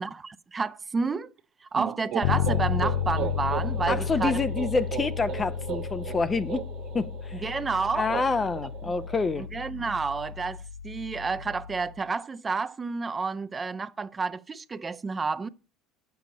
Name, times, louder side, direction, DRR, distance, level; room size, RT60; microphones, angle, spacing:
voice 1, 0.0-1.3 1.6-4.4 7.3-8.1 9.4-15.5, right 4 dB, 25° right, 0.7 m, -30 dB
sound 1, 1.7-9.5, right 11 dB, 55° right, 1.1 m, -37 dB
Bass guitar, 2.2-12.0, left 9 dB, 75° left, 0.4 m, -32 dB
voice 2, 3.9-6.6 6.9-7.4 8.0-9.5, left 4 dB, 25° left, 0.7 m, -27 dB
9.1 x 7.1 x 6.2 m
hypercardioid pair, 85°, 0 cm